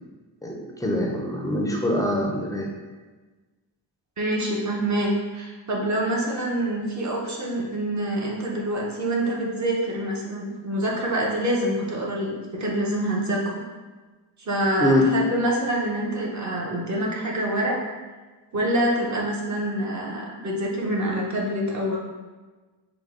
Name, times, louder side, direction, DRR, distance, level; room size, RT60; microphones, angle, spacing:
voice 1, 0.4-2.7 14.8-15.1, left 1 dB, 10° left, -2 dB, 0.3 m, -24 dB
voice 2, 4.2-13.6 14.4-17.7 18.5-22.0, right 1 dB, 40° right, -2 dB, 0.6 m, -26 dB
4.8 x 2.1 x 3.5 m, 1.3 s
wide cardioid pair, 180°, 45 cm